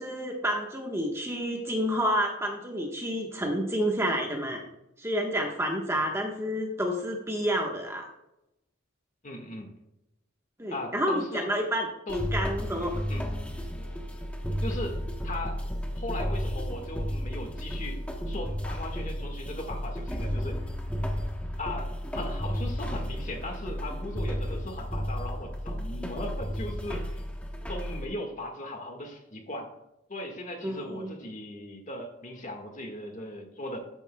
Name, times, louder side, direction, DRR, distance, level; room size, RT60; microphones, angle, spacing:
voice 1, 0.0-4.6 5.0-8.1 10.6-13.0 30.6-31.1, equal, 15° right, 1 dB, 1.2 m, -29 dB
voice 2, 9.2-9.7 10.7-11.5 12.1-12.2 13.1-13.3 14.6-15.0 15.2-15.6 15.9-18.0 18.3-20.6 21.6-27.2 27.7-29.7 30.1-33.8, left 1 dB, 40° left, 3 dB, 1.6 m, -38 dB
sound 1, 12.1-28.0, equal, 5° left, 1.0 m, -33 dB
13.5 x 8.9 x 2.3 m, 0.89 s
head